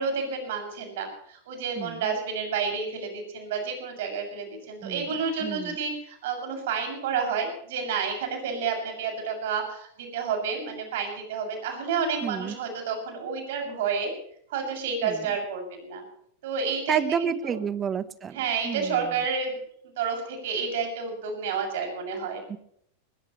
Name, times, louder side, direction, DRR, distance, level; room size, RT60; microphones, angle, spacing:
voice 1, 0.0-14.1 14.5-16.0 16.4-17.6 18.3-19.6 20.0-22.4, right 5 dB, 55° right, 3 dB, 7.0 m, -30 dB
voice 2, 1.8-2.1 4.8-5.1 5.4-5.8 12.2-12.5 15.0-15.3 16.9-18.4 18.6-19.2 22.5-22.6, right 7 dB, 20° right, 16 dB, 1.2 m, -30 dB
21.0 x 20.5 x 3.2 m, 0.67 s
figure-of-eight pair, 90°, 0 cm